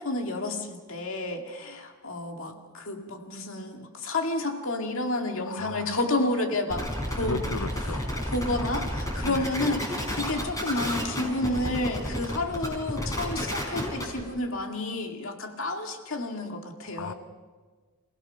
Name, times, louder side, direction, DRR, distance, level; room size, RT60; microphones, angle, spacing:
voice 1, 0.0-7.4 7.9-17.1, left 2 dB, 60° left, 3 dB, 2.3 m, -30 dB
voice 2, 5.5-6.0 7.2-8.1 9.2-9.5 17.0-17.1, left 4 dB, 85° left, 13 dB, 0.9 m, -35 dB
sound 1, 6.7-14.2, equal, 15° left, 5.0 m, -31 dB
28.5 x 16.5 x 5.8 m, 1.4 s
head